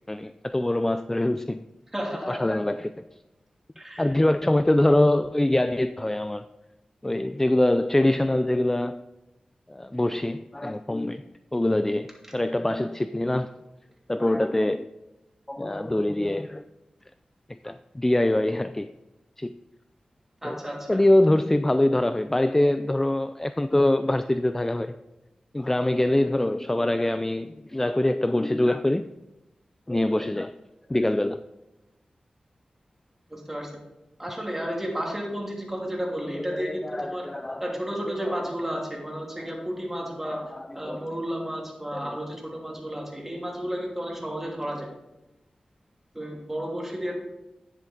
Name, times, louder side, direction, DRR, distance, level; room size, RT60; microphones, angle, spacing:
voice 1, 0.1-1.6 2.2-2.9 4.0-6.4 7.0-9.0 9.7-11.2 11.5-13.5 14.1-14.9 15.5-16.6 17.5-18.9 19.4-19.6 20.4-20.6 20.9-25.0 25.5-29.0 29.9-30.5 30.9-31.4 36.3-37.7 38.2-38.5 40.8-41.0 41.9-42.2, left 1 dB, 15° left, 11 dB, 0.3 m, -24 dB
voice 2, 1.9-2.4 3.8-4.2 20.4-21.0 33.3-33.8 34.2-37.3 37.6-40.4 40.7-44.9 46.1-47.1, equal, 10° right, -1 dB, 2.7 m, -32 dB
9.9 x 7.2 x 3.9 m, 0.98 s
cardioid pair, 50°, 2 cm